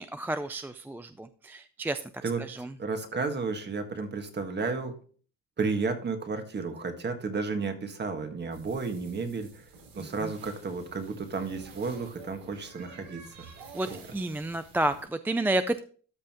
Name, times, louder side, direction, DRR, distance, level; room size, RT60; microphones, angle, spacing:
voice 1, 0.0-2.0 2.4-2.7 10.0-10.3 13.7-15.8, right 1 dB, 5° right, 10 dB, 0.3 m, -31 dB
voice 2, 2.2-5.0 5.6-9.6 9.9-13.2 13.9-14.0, right 4 dB, 30° right, 6 dB, 1.5 m, -32 dB
sound 1, 8.5-15.0, right 4 dB, 90° right, 4.2 m, -50 dB
13.0 x 5.6 x 2.9 m, 0.41 s
cardioid pair, 130°, 33 cm